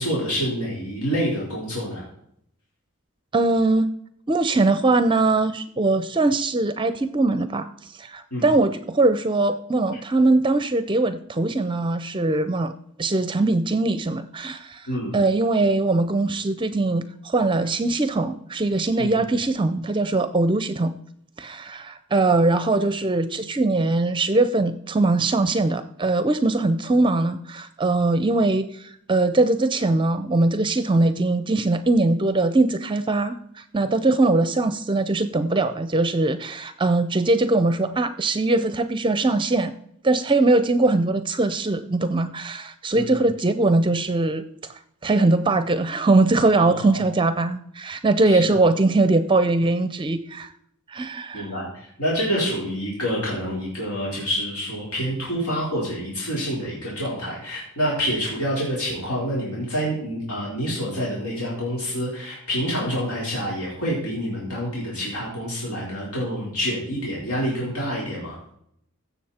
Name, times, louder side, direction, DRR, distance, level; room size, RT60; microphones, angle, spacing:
voice 1, 0.0-2.0 8.3-8.5 14.9-15.1 19.0-19.3 42.9-43.2 46.6-47.0 48.2-48.6 51.3-68.4, equal, 85° left, -5 dB, 4.4 m, -27 dB
voice 2, 3.3-3.9 4.3-12.7 13.0-14.9 15.1-20.9 21.4-39.7 40.0-44.4 45.0-50.5 50.9-51.5, right 2 dB, 20° right, 12 dB, 0.5 m, -21 dB
16.0 x 7.1 x 4.3 m, 0.72 s
head